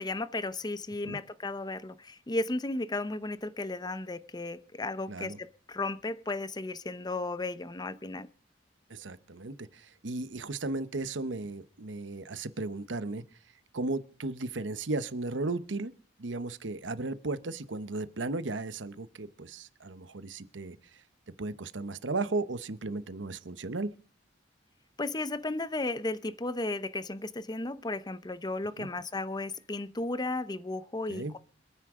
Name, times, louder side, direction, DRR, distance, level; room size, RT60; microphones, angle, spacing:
voice 1, 0.0-8.3 25.0-31.4, left 2 dB, 20° left, 0.8 m, -34 dB
voice 2, 8.9-13.2 13.7-15.9 16.2-20.8 21.4-23.9 28.8-28.9 31.1-31.3, right 3 dB, 80° right, 0.9 m, -35 dB
27.5 x 9.9 x 3.7 m
head